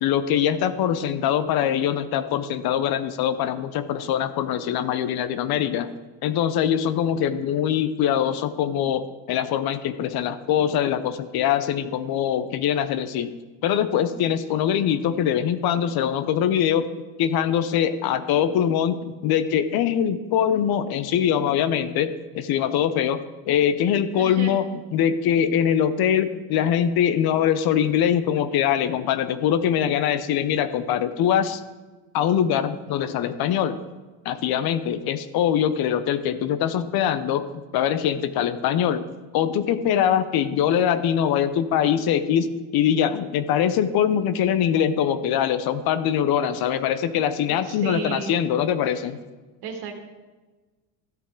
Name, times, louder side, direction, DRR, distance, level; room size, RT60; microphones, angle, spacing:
voice 1, 0.0-5.9 6.2-13.3 13.6-16.9 17.2-23.2 23.5-24.7 24.9-31.6 32.1-33.8 34.2-39.0 39.3-49.2, left 9 dB, 55° left, 12 dB, 0.8 m, -23 dB
voice 2, 24.1-24.6 47.5-48.4 48.9-49.0 49.6-49.9, right 5 dB, 60° right, 4 dB, 2.0 m, -34 dB
13.5 x 8.2 x 3.8 m, 1.2 s
supercardioid pair, 90°, 43 cm